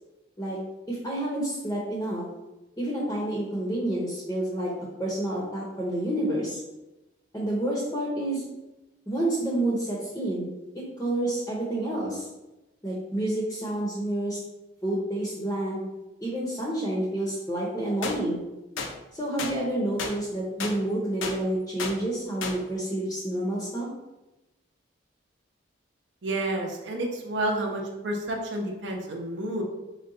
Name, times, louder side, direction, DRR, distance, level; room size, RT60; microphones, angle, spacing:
voice 1, 0.9-2.2 2.8-4.7 5.0-6.6 7.3-8.5 9.1-12.3 12.8-14.4 14.8-15.8 16.2-18.4 19.1-23.9, right 1 dB, 15° left, -5 dB, 0.6 m, -29 dB
sound 1, 18.0-18.2 18.8-18.9 19.4-19.5 20.0-20.1 20.6-20.7 21.2-21.4 21.8-21.9 22.4-22.6, left 4 dB, 80° left, 0.4 m, -31 dB
voice 2, 26.2-29.6, right 1 dB, 65° right, 1 dB, 0.6 m, -30 dB
3.9 x 2.2 x 3.7 m, 1.0 s
head